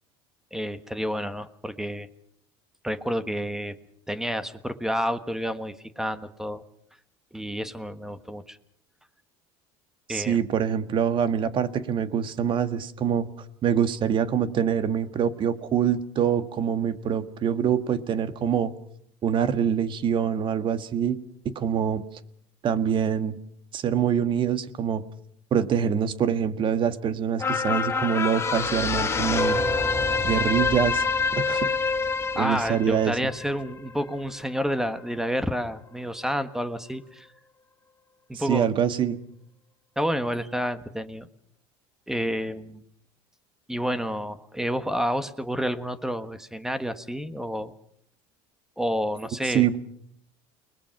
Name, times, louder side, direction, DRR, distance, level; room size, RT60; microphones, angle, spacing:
voice 1, 0.5-2.1 2.8-3.7 4.1-6.6 7.3-8.6 10.1-10.4 32.3-37.3 38.4-38.7 40.0-41.3 42.1-42.8 43.7-47.7 48.8-49.7, equal, 5° right, 11 dB, 1.3 m, -29 dB
voice 2, 10.1-13.3 13.6-18.7 19.2-21.2 21.4-22.0 22.6-23.4 23.7-25.0 25.5-29.6 30.2-31.0 31.3-31.7 32.3-33.2 38.5-39.2 49.4-49.7, right 8 dB, 40° right, 10 dB, 1.7 m, -25 dB
sound 1, 27.4-34.0 34.5-34.6, left 4 dB, 20° left, 2.1 m, -26 dB
29.5 x 20.5 x 5.9 m, 0.69 s
supercardioid pair, 115°, 12 cm